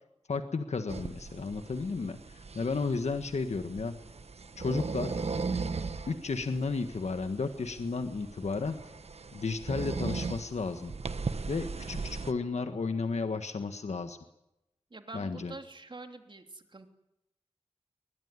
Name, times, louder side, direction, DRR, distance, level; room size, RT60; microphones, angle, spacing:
voice 1, 0.3-4.0 4.6-5.2 6.1-8.8 9.3-10.9 11.5-14.2 15.1-15.5, left 4 dB, 80° left, 8 dB, 1.5 m, -33 dB
sound 1, 0.9-12.3, right 4 dB, 70° right, 1.4 m, -38 dB
voice 2, 14.9-16.9, right 2 dB, 45° right, 6 dB, 3.0 m, -46 dB
23.0 x 20.5 x 9.7 m, 0.88 s
wide cardioid pair, 75°, 11 cm